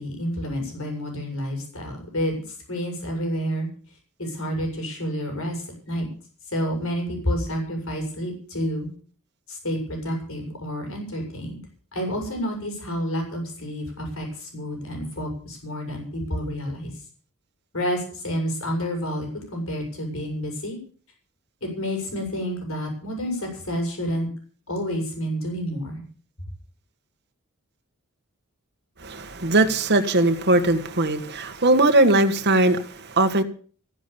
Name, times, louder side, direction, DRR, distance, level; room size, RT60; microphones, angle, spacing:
voice 1, 0.0-3.7 4.2-6.1 6.5-8.9 9.5-11.6 11.9-16.9 17.7-20.8 21.6-24.3 24.7-26.0, equal, 65° left, 7.4 m, -29 dB
voice 2, 29.0-33.4, right 2 dB, 50° right, 1.7 m, -20 dB
15.5 x 11.0 x 7.1 m
head